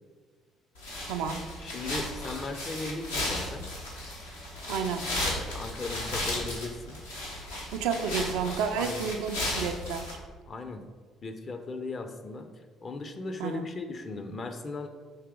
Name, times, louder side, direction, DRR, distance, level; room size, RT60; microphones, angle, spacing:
sound 1, 0.8-10.1, left 1 dB, 85° left, 0.9 m, -35 dB
voice 1, 1.0-1.4 4.7-5.1 7.7-10.2 13.4-13.7, right 6 dB, 70° right, 6 dB, 0.3 m, -31 dB
voice 2, 1.6-3.7 5.2-7.0 8.7-9.1 10.5-10.8 11.2-12.5 12.8-14.9, left 3 dB, 35° left, 7 dB, 0.5 m, -37 dB
4.8 x 2.9 x 3.6 m, 1.5 s
figure-of-eight pair, 50°, 0 cm